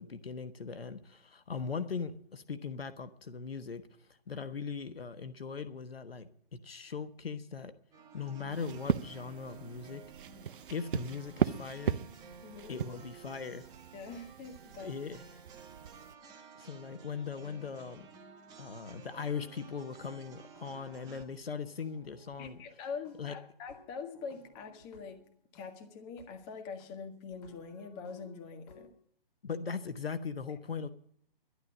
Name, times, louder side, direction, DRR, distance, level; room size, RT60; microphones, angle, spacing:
voice 1, 0.0-3.8 4.3-7.7 8.1-10.0 10.7-12.0 12.7-13.6 14.8-15.2 16.6-18.1 18.6-22.6 23.2-23.3 29.4-30.9, left 5 dB, 80° left, 11 dB, 1.2 m, -39 dB
sound 1, 7.9-21.3, right 6 dB, 15° right, 1.3 m, -54 dB
sound 2, 8.5-16.2, right 8 dB, 60° right, 0.7 m, -38 dB
voice 2, 12.4-12.8 13.9-14.9 22.4-25.2 25.5-28.9 30.5-30.6, left 5 dB, 25° left, 5 dB, 1.7 m, -44 dB
sound 3, 20.0-22.8 23.0-25.7 26.2-26.3 26.8-26.9 27.3-28.9, left 2 dB, 45° left, 7.2 m, -60 dB
11.5 x 11.5 x 7.4 m, 0.63 s
figure-of-eight pair, 140°, 29 cm